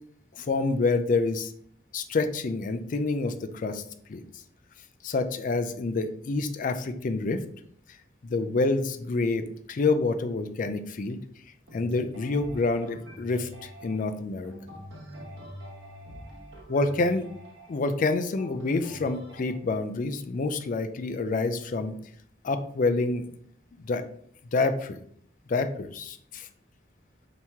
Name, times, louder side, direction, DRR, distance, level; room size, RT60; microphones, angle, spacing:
voice 1, 0.4-1.5 1.9-3.8 4.1-4.2 5.0-7.4 8.2-11.2 11.7-14.5 16.7-17.3 17.7-22.0 22.4-23.2 23.8-24.0 24.5-25.0 25.5-26.5, left 3 dB, 45° left, 9 dB, 0.4 m, -27 dB
sound 1, 11.7-19.6, equal, 70° right, 1.2 m, -45 dB
4.4 x 2.9 x 3.5 m, 0.64 s
head